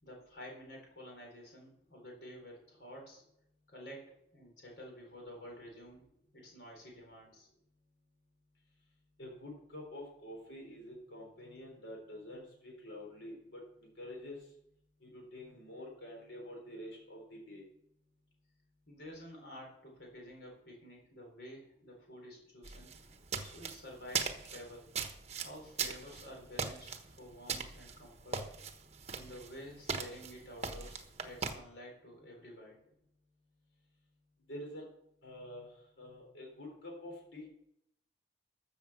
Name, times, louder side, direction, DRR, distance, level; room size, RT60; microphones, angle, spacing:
voice 1, 0.0-3.2 3.7-6.0 6.3-7.5 18.9-22.9 23.4-24.9 25.4-28.4 29.1-32.7, equal, 70° left, 0 dB, 4.1 m, -51 dB
voice 2, 9.2-14.4 15.0-17.7 34.5-34.9 35.2-37.5, left 1 dB, 90° left, 0 dB, 3.9 m, -47 dB
sound 1, 22.6-31.5, right 5 dB, 35° right, 1.1 m, -40 dB
14.0 x 7.2 x 6.0 m, 0.74 s
head